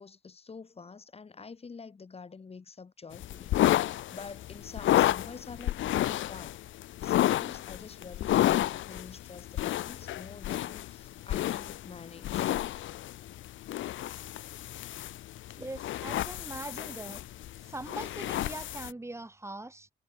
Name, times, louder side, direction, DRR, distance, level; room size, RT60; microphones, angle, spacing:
voice 1, 0.0-6.6 7.0-12.5, left 5 dB, 30° left, 1.9 m, -47 dB
sound 1, 3.1-18.9, left 14 dB, 75° left, 0.9 m, -31 dB
voice 2, 15.5-17.2 17.6-19.9, right 2 dB, 15° right, 4.6 m, -41 dB
cardioid pair, 90°, 20 cm